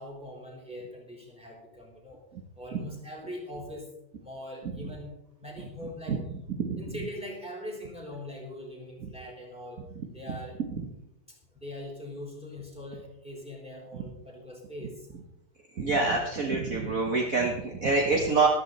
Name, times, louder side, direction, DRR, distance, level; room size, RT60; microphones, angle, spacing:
voice 1, 0.0-2.2 2.6-3.9 4.2-6.2 6.8-9.8 10.1-10.6 11.5-14.9, left 1 dB, 5° right, -1 dB, 3.8 m, -41 dB
voice 2, 6.6-7.0 9.9-10.1 13.9-14.0 15.8-18.5, right 3 dB, 45° right, 1 dB, 1.6 m, -26 dB
14.0 x 12.5 x 4.1 m, 0.84 s
omnidirectional pair, 2.1 m